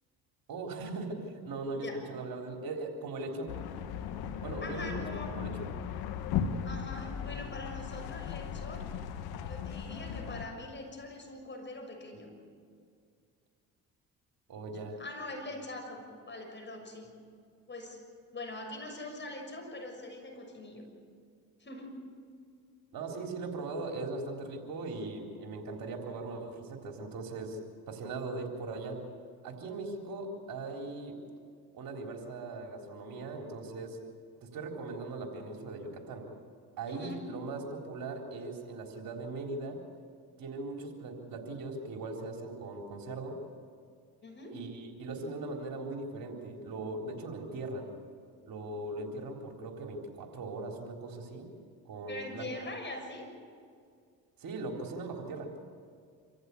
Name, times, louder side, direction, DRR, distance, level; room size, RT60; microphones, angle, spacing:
voice 1, 0.5-3.5 4.4-5.7 14.5-15.0 22.9-27.6 27.9-29.0 29.4-31.2 31.7-34.0 34.4-36.3 36.8-39.8 40.4-43.4 44.5-47.9 48.5-51.5 51.9-52.5 54.4-55.5, right 3 dB, 60° right, 2 dB, 4.0 m, -39 dB
sound 1, 3.5-10.5, left 8 dB, 75° left, 1.7 m, -37 dB
voice 2, 4.6-5.3 6.6-8.8 9.4-12.3 14.8-17.1 17.7-18.0 18.3-20.9 21.6-22.0 36.9-37.3 44.2-44.6 52.1-53.3, left 2 dB, 30° left, 3 dB, 6.5 m, -43 dB
27.0 x 15.0 x 8.5 m, 2.1 s
supercardioid pair, 75°, 38 cm